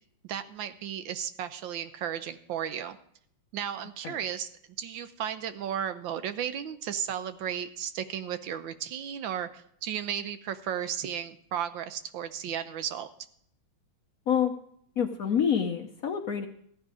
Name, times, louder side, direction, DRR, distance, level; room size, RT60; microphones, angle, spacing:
voice 1, 0.2-3.0 3.5-4.5 4.8-13.1, right 9 dB, 75° right, 11 dB, 1.4 m, -34 dB
voice 2, 15.0-16.5, left 8 dB, 60° left, 4 dB, 1.0 m, -27 dB
15.0 x 10.0 x 4.8 m, 0.67 s
omnidirectional pair, 2.2 m